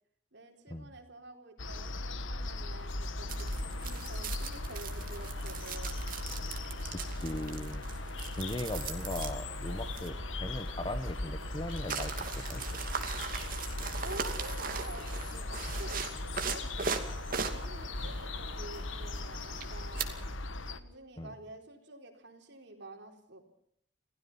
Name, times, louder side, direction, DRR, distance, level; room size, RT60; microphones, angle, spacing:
voice 1, 0.3-6.0 14.0-17.0 17.5-20.1 20.7-23.5, right 2 dB, 60° right, 3 dB, 4.2 m, -49 dB
sound 1, 1.6-20.8, left 2 dB, 90° left, 1.5 m, -38 dB
sound 2, 3.3-20.3, right 6 dB, 45° right, 2.5 m, -41 dB
voice 2, 6.9-7.9 8.3-12.6 18.0-18.1 21.2-21.3, left 1 dB, 25° left, 11 dB, 1.3 m, -39 dB
27.5 x 16.5 x 5.6 m, 0.70 s
head